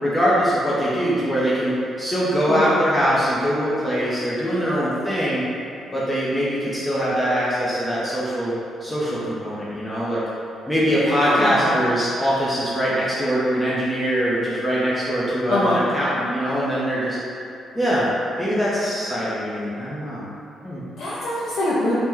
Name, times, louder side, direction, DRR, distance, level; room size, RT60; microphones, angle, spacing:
voice 1, 0.0-5.4 5.9-8.6 8.8-10.2 10.7-17.2 17.7-18.1 18.4-20.2 20.6-20.8, equal, 10° left, -9 dB, 0.6 m, -22 dB
voice 2, 10.9-11.8 15.5-15.8 21.0-21.9, left 1 dB, 75° left, -10 dB, 0.6 m, -24 dB
2.9 x 2.1 x 3.7 m, 2.5 s
cardioid pair, 90°, 0 cm